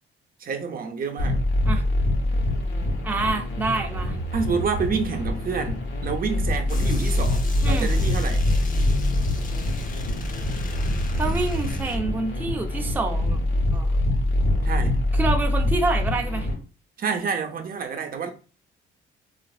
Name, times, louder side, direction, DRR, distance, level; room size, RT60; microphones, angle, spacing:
voice 1, 0.4-1.4 4.3-8.5 14.6-15.0 17.0-18.3, right 5 dB, 45° right, 0.7 m, -28 dB
sound 1, 1.2-16.5, left 1 dB, 75° left, 1.0 m, -24 dB
voice 2, 3.0-4.2 7.6-7.9 11.2-13.4 13.7-13.9 15.1-16.5, right 3 dB, 10° right, 0.5 m, -27 dB
sound 2, 6.7-12.0, left 2 dB, 45° left, 0.7 m, -31 dB
3.7 x 2.5 x 2.3 m
cardioid pair, 90°, 20 cm